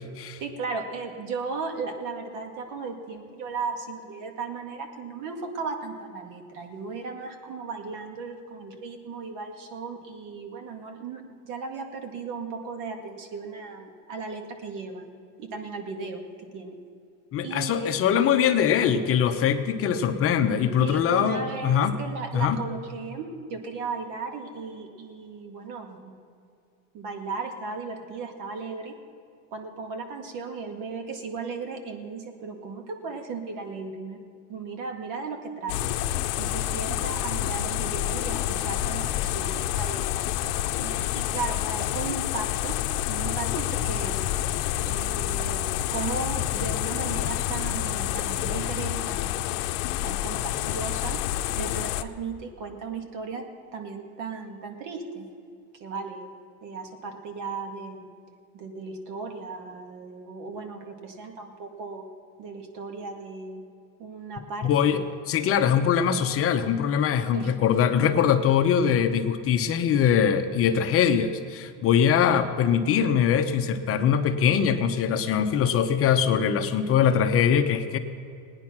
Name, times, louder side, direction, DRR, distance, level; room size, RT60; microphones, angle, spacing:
voice 1, 0.4-15.1 15.4-16.8 17.4-18.0 20.8-26.1 26.9-29.0 29.5-34.2 34.5-35.9 36.4-40.2 40.8-42.8 43.1-44.3 44.8-51.2 51.6-53.4 53.7-55.3 55.7-56.3 56.6-58.1 58.5-62.0 62.4-63.6 64.0-65.0 67.3-67.5, right 4 dB, 55° right, 4 dB, 2.0 m, -36 dB
voice 2, 17.3-21.9 22.3-22.6 64.6-65.0 65.3-78.0, left 8 dB, 40° left, 8 dB, 0.8 m, -22 dB
sound 1, 35.7-52.0, left 13 dB, 75° left, 0.7 m, -28 dB
18.0 x 9.7 x 6.0 m, 2.4 s
cardioid pair, 135°, 36 cm